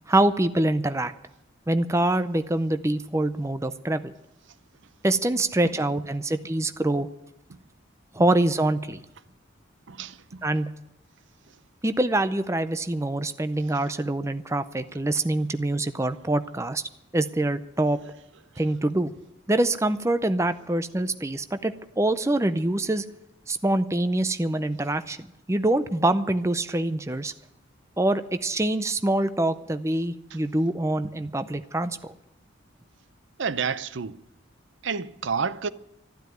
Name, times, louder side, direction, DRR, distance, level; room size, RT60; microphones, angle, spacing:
voice 1, 0.1-1.1 1.7-4.1 5.0-7.1 8.1-9.0 10.4-10.7 11.8-16.8 17.1-18.0 18.6-19.1 19.5-23.0 23.5-27.3 28.0-32.1, right 1 dB, 15° right, 0.5 m, -25 dB
voice 2, 9.9-10.4 33.4-34.2 34.8-35.7, right 6 dB, 65° right, 0.6 m, -29 dB
13.0 x 12.5 x 9.1 m
head